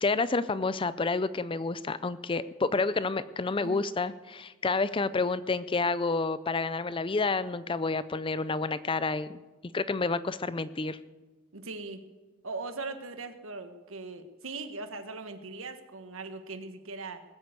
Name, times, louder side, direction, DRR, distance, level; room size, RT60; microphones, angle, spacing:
voice 1, 0.0-9.4 9.7-11.0, left 3 dB, 25° left, 15 dB, 0.4 m, -29 dB
voice 2, 11.5-12.0 12.4-17.2, right 3 dB, 70° right, 8 dB, 1.4 m, -40 dB
20.0 x 8.0 x 8.2 m, 1.2 s
head